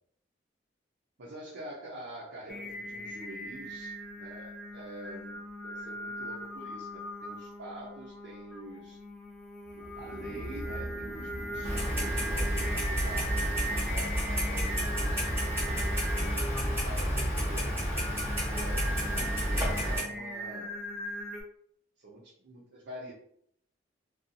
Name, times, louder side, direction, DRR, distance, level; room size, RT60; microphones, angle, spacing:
voice 1, 1.2-9.0 9.7-17.7 18.4-20.7 22.0-23.1, right 1 dB, 85° right, -6 dB, 0.7 m, -46 dB
Singing, 2.5-21.4, right 1 dB, 5° left, 0.4 m, -40 dB
sound 1, 9.7-14.5, equal, 55° left, 0.5 m, -41 dB
Clock, 11.6-20.0, equal, 15° right, 1.0 m, -30 dB
2.6 x 2.3 x 2.7 m, 0.68 s
head